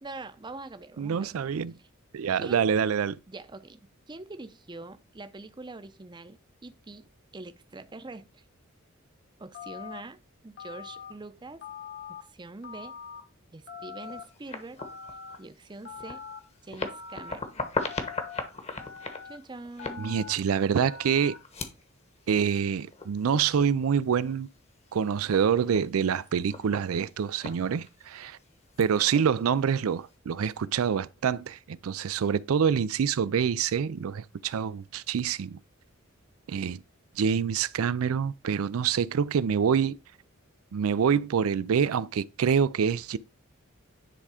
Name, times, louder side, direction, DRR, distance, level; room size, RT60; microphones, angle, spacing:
voice 1, 0.0-1.3 1.8-1.9 2.4-2.7 3.3-3.8 4.1-7.1 7.3-8.4 9.4-11.6 12.3-12.9 13.5-14.8 15.4-16.2 16.6-17.7 19.3-20.2, right 2 dB, 20° right, 0.6 m, -44 dB
voice 2, 1.0-1.7 2.1-3.2 20.0-21.3 22.3-24.5 24.9-28.4 28.8-35.6 36.5-36.8 37.2-40.0 40.7-43.2, right 7 dB, 90° right, 0.4 m, -26 dB
Telephone, 9.5-10.0 10.6-11.1 11.6-12.2 12.6-13.2 13.7-14.2 14.8-15.4 15.8-16.4 16.8-17.3 17.9-18.4 18.8-19.4 19.8-20.3 20.8-21.4, left 6 dB, 60° left, 1.5 m, -43 dB
sound 1, 14.0-30.2, left 3 dB, 30° left, 1.1 m, -41 dB
10.0 x 3.6 x 4.9 m
head